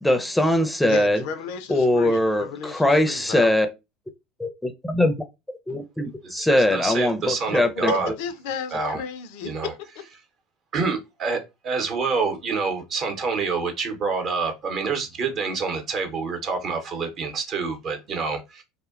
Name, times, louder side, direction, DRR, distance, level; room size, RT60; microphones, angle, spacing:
voice 1, 0.0-1.2 1.7-3.7 4.4-5.1 5.7-7.9, left 1 dB, 5° left, 0.5 m, -21 dB
voice 2, 0.9-3.5 7.8-9.5 10.0-10.1, left 6 dB, 70° left, 0.4 m, -33 dB
voice 3, 6.2-8.1 8.7-9.0 9.4-9.7 10.7-18.6, right 4 dB, 45° right, 0.7 m, -27 dB
2.7 x 2.1 x 2.4 m
hypercardioid pair, 75°, 0 cm